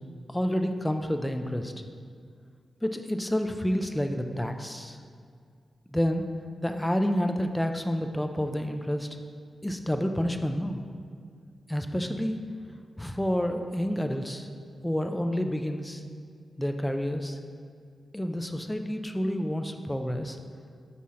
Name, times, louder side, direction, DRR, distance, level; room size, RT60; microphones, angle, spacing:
voice 1, 0.3-1.7 2.8-5.0 5.9-6.3 6.6-9.1 9.6-10.8 11.7-12.4 13.0-14.5 14.8-16.0 16.6-17.4 18.1-20.4, equal, 5° left, 6 dB, 0.3 m, -29 dB
5.5 x 4.2 x 6.2 m, 2.1 s
wide cardioid pair, 165°, 0 cm